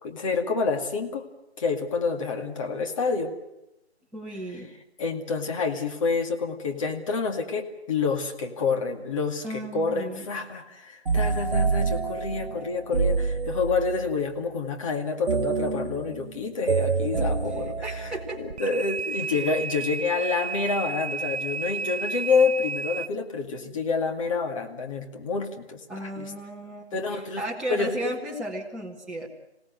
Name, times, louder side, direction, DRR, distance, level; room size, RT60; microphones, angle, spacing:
voice 1, 0.0-1.3 1.6-3.3 5.0-25.8 26.2-26.3 26.9-27.4 27.7-28.0, left 4 dB, 30° left, 3 dB, 2.2 m, -28 dB
voice 2, 4.1-4.7 9.4-10.3 17.2-18.4 19.3-19.5 25.9-29.3, right 1 dB, ahead, -5 dB, 2.0 m, -35 dB
sound 1, 11.1-14.0 15.3-18.6, right 5 dB, 55° right, 2.0 m, -27 dB
sound 2, 18.5-23.1, right 5 dB, 75° right, 0.8 m, -32 dB
27.0 x 17.5 x 8.0 m, 0.90 s
figure-of-eight pair, 155°, 33 cm